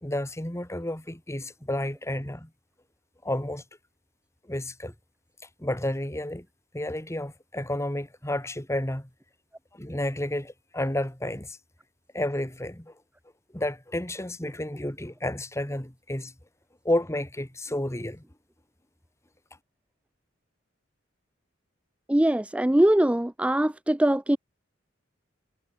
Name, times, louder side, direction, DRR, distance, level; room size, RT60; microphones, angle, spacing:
voice 1, 0.0-2.5 3.2-3.6 4.5-4.9 5.6-6.5 6.7-9.1 9.7-11.6 12.1-12.9 13.5-16.3 16.8-18.2, left 1 dB, 15° left, 2.4 m, -31 dB
voice 2, 22.1-24.4, right 1 dB, 5° right, 0.4 m, -22 dB
head